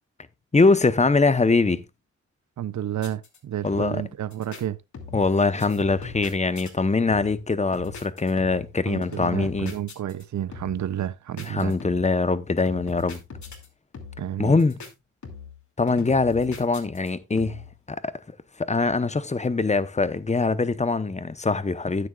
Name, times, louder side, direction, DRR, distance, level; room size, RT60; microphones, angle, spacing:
voice 1, 0.5-1.8 3.6-4.0 5.1-9.7 11.5-13.2 14.4-14.8 15.8-17.6 17.9-18.1 18.6-22.1, left 3 dB, 25° left, 0.9 m, -23 dB
voice 2, 2.6-4.8 8.9-11.7 14.2-14.5, right 11 dB, 75° right, 0.6 m, -30 dB
sound 1, 3.0-3.4 3.7-4.0 4.3-4.6 4.9-5.3 5.6-6.7 7.1-7.5 7.7-8.7 9.0-10.2 10.5-10.9 11.4-12.2 12.7-13.7 13.9-14.3 14.6-14.9 15.2-15.6 15.9-17.1 17.4-17.7, left 5 dB, 70° left, 2.5 m, -40 dB
13.0 x 9.4 x 2.4 m
wide cardioid pair, 100°, 30 cm